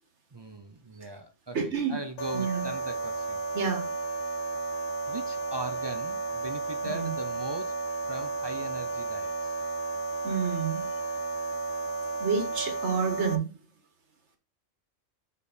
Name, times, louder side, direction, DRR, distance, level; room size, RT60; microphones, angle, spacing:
voice 1, 0.3-3.4 5.1-7.8 8.1-9.5, right 2 dB, 40° right, 0.3 m, -39 dB
voice 2, 1.5-1.9 2.3-2.7 3.5-3.9 6.9-7.1 10.2-10.8 12.2-13.4, right 6 dB, 60° right, 1.7 m, -29 dB
sound 1, 2.2-13.4, right 3 dB, 85° left, 1.2 m, -33 dB
4.9 x 4.7 x 5.1 m
omnidirectional pair, 1.4 m